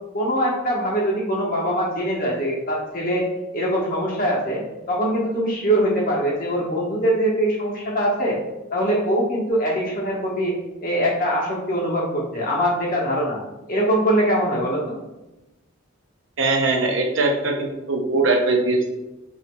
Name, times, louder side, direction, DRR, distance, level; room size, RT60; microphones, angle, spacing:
voice 1, 0.1-3.3 3.5-4.6 4.9-8.4 8.7-10.5 10.8-13.4 13.7-15.0, equal, 45° left, -3 dB, 1.1 m, -22 dB
voice 2, 16.4-18.9, right 2 dB, 65° right, 2 dB, 0.6 m, -21 dB
5.9 x 2.8 x 2.2 m, 0.98 s
head